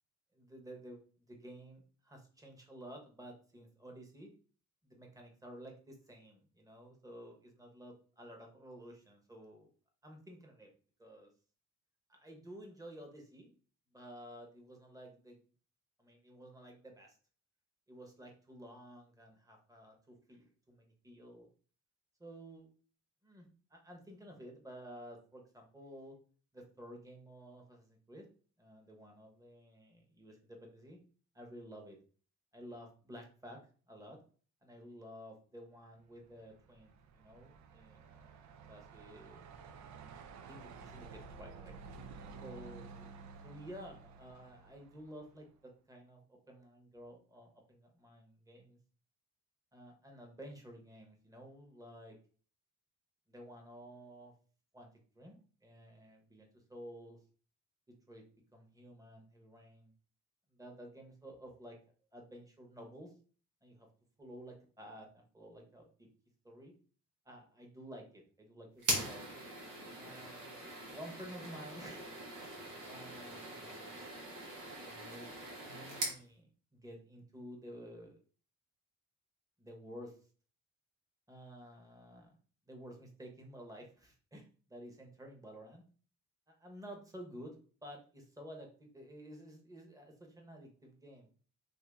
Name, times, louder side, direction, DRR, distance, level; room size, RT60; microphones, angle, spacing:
voice 1, 0.3-4.3 4.8-9.7 10.0-10.7 11.0-11.3 12.1-13.6 13.9-15.4 16.0-17.2 17.9-21.5 22.2-22.7 23.2-26.2 26.5-28.2 28.6-31.0 31.3-32.0 32.5-33.6 33.9-34.2 34.6-39.5 40.5-41.7 42.4-48.8 49.7-52.2 53.3-54.3 54.7-54.9 55.1-57.2 57.9-58.2 58.5-59.9 60.5-61.8 62.1-63.1 63.6-63.9 64.2-66.1 66.4-66.7 67.2-69.3 69.9-72.1 72.8-74.0 74.9-75.3 75.6-78.2 79.6-80.2 81.3-82.4 82.7-85.8 86.5-87.5 87.8-91.4, equal, 10° right, 2 dB, 1.0 m, -52 dB
Truck, 36.2-45.6, right 5 dB, 70° right, 0.5 m, -52 dB
sound 1, 68.8-76.2, right 1 dB, 85° right, 1.3 m, -41 dB
2.9 x 2.7 x 3.4 m, 0.41 s
cardioid pair, 90°, 30 cm